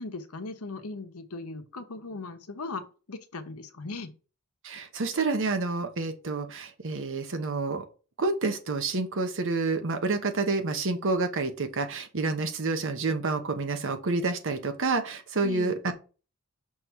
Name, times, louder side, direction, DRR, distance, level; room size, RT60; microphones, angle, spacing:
voice 1, 0.0-2.8 3.1-4.1 15.4-15.7, left 3 dB, 75° left, 8 dB, 1.0 m, -38 dB
voice 2, 4.6-7.8 8.2-15.9, right 3 dB, 60° right, 6 dB, 1.1 m, -28 dB
6.0 x 3.2 x 5.6 m, 0.35 s
head